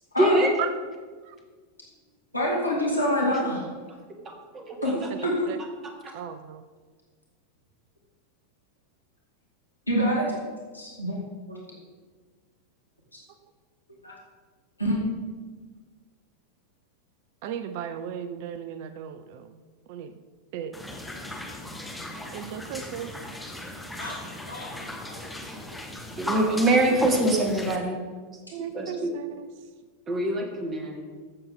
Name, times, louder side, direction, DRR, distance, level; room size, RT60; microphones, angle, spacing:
voice 1, 0.2-0.5 4.3-4.8 26.2-28.0 28.6-29.1 30.1-31.0, right 1 dB, 25° right, 3 dB, 1.7 m, -24 dB
voice 2, 2.3-3.6 4.8-5.0 5.2-5.3 9.9-10.3 10.7-11.2 11.5-11.6 14.0-14.1 14.8-15.0 22.8-23.1 24.0-24.2 24.5-24.7, equal, 85° left, -3 dB, 2.1 m, -26 dB
voice 3, 5.1-5.6 6.1-6.6 17.4-19.6 19.9-20.1 20.5-20.7 22.3-23.1 28.5-29.5, right 9 dB, 50° right, 11 dB, 0.5 m, -35 dB
sound 1, 20.7-27.8, left 1 dB, 5° left, 1.0 m, -36 dB
14.5 x 7.1 x 3.6 m, 1.5 s
figure-of-eight pair, 90°, 0 cm